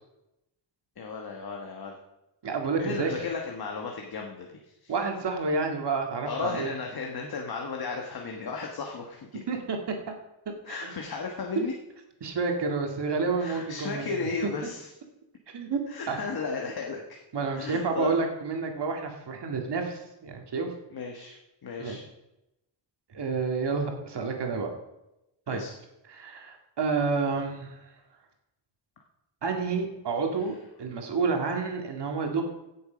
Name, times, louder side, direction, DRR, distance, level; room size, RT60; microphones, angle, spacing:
voice 1, 1.0-2.0 2.8-4.5 4.8-4.9 6.2-9.4 10.6-11.7 13.4-14.9 15.9-17.2 17.5-18.2 20.9-21.3 21.6-22.0 25.5-25.7, left 5 dB, 50° left, 1 dB, 1.4 m, -34 dB
voice 2, 2.4-3.1 4.9-6.7 9.5-10.0 10.7-10.9 12.2-14.3 15.5-15.8 16.1-16.2 17.3-20.7 21.8-22.0 23.1-24.7 25.5-25.6 26.1-27.8 29.4-32.4, right 4 dB, 60° right, 3 dB, 2.1 m, -29 dB
16.5 x 7.2 x 5.1 m, 0.93 s
wide cardioid pair, 165°, 46 cm